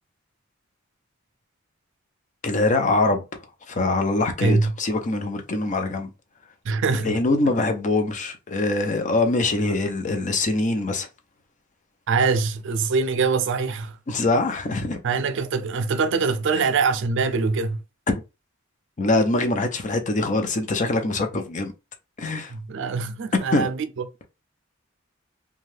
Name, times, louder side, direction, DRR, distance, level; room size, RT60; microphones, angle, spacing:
voice 1, 2.4-3.2 3.7-6.1 7.0-11.1 14.1-15.0 16.5-16.7 18.1-18.2 19.0-21.7 22.2-22.5 23.5-23.7, left 2 dB, 40° left, 0.5 m, -23 dB
voice 2, 4.4-4.7 6.6-7.1 12.1-14.0 15.0-17.8 22.5-23.9, right 4 dB, 65° right, 0.4 m, -23 dB
2.6 x 2.3 x 3.2 m
head